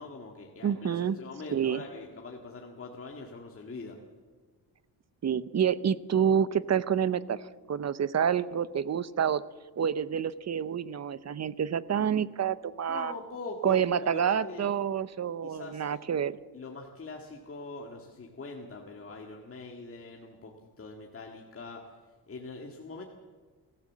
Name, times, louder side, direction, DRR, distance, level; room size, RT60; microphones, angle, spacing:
voice 1, 0.0-4.0 12.9-14.8 15.4-16.1 16.5-21.9 22.3-23.0, left 3 dB, 35° left, 1 dB, 1.9 m, -43 dB
voice 2, 0.6-1.2 1.5-1.8 5.2-9.4 9.8-13.1 13.6-16.4, right 8 dB, 40° right, 17 dB, 0.7 m, -28 dB
24.5 x 15.0 x 7.4 m, 1.4 s
wide cardioid pair, 135°, 40 cm